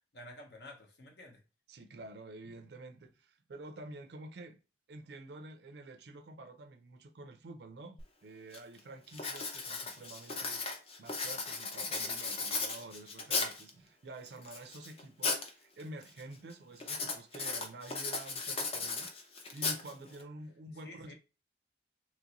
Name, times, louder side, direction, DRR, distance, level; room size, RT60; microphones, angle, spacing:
voice 1, 0.1-1.4 20.8-21.1, left 1 dB, 65° left, 0.9 m, -51 dB
voice 2, 1.7-4.6 4.9-10.6 11.0-21.1, right 2 dB, 60° right, 0.4 m, -49 dB
Writing, 8.0-8.1 8.5-8.8 9.1-13.7 14.3-15.5 15.8-16.2 16.8-20.2, left 4 dB, 35° left, 0.5 m, -36 dB
2.9 x 2.6 x 2.8 m
head